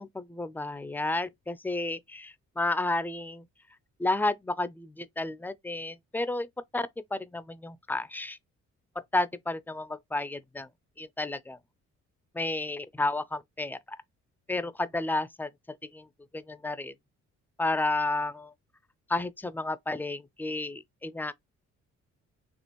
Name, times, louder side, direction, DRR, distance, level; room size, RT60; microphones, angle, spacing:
voice 1, 0.0-3.5 4.0-6.5 6.7-8.4 9.1-10.7 11.0-11.6 12.3-14.0 14.5-15.5 15.9-16.1 16.3-16.9 17.6-18.5 19.1-21.3, left 2 dB, 5° left, 0.4 m, -31 dB
4.3 x 2.9 x 2.9 m
cardioid pair, 90°, 30 cm